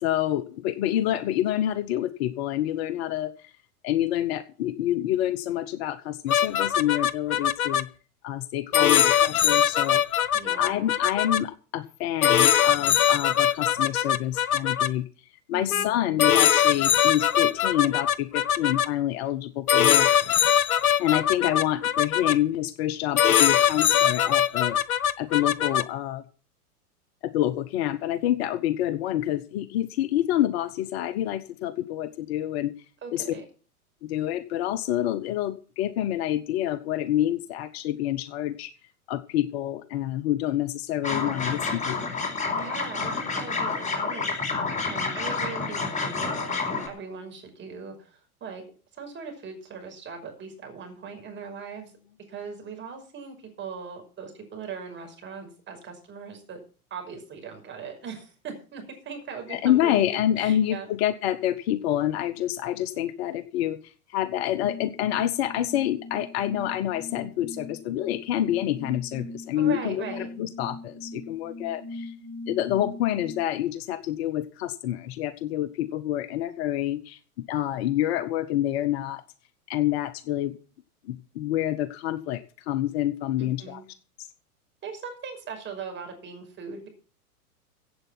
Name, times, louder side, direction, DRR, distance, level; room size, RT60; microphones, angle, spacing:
voice 1, 0.0-3.5 3.8-7.9 8.2-10.0 10.6-15.1 15.5-20.1 21.0-24.8 25.2-26.2 27.2-32.7 33.1-33.3 34.0-38.7 39.1-42.2 59.5-72.1 72.5-77.2 77.5-79.2 79.7-80.6 81.0-83.8, left 12 dB, 45° left, 14 dB, 1.0 m, -27 dB
sound 1, 6.3-7.8 8.7-11.4 12.2-14.9 15.7-15.9 16.2-18.9 19.7-22.3 23.2-25.8, left 9 dB, 70° left, 0.9 m, -21 dB
voice 2, 10.3-10.9 15.5-15.9 33.0-33.4 42.5-44.3 44.9-48.6 48.9-51.9 52.3-56.6 56.9-60.9 69.5-70.3 83.4-83.8 84.8-86.9, right 6 dB, 25° right, 4 dB, 5.8 m, -39 dB
sound 2, 41.0-46.9, left 4 dB, 15° left, 4.6 m, -29 dB
sound 3, 64.6-73.5, left 2 dB, 85° right, 6.4 m, -41 dB
16.0 x 8.0 x 6.1 m, 0.39 s
figure-of-eight pair, 100°, 45 cm